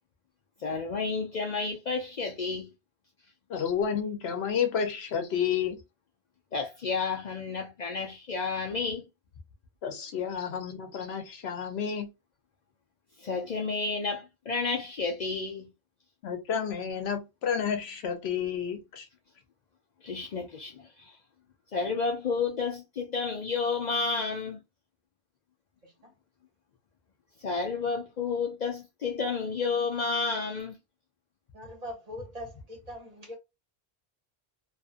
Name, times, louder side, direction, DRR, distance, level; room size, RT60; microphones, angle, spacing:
voice 1, 0.6-2.7 6.5-9.1 13.2-15.7 20.0-21.1 21.7-24.6 27.4-30.8, left 4 dB, 50° left, 0.6 m, -31 dB
voice 2, 3.5-5.8 9.8-12.1 16.2-19.0, left 7 dB, 80° left, 0.9 m, -30 dB
voice 3, 25.8-26.1 31.5-33.4, equal, 40° right, 1.0 m, -42 dB
2.5 x 2.5 x 2.4 m
omnidirectional pair, 1.1 m